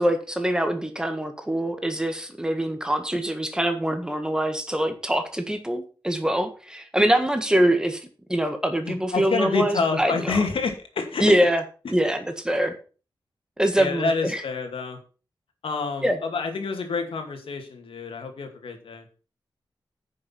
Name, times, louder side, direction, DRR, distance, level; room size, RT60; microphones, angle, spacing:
voice 1, 0.0-8.0 8.3-10.4 11.2-11.6 11.9-12.7 13.6-14.4 16.0-16.2, right 1 dB, 10° right, 7 dB, 1.7 m, -24 dB
voice 2, 8.9-11.3 13.8-15.0 15.6-19.1, left 4 dB, 85° left, 4 dB, 2.5 m, -28 dB
10.0 x 6.6 x 5.9 m, 0.36 s
wide cardioid pair, 120°, 9 cm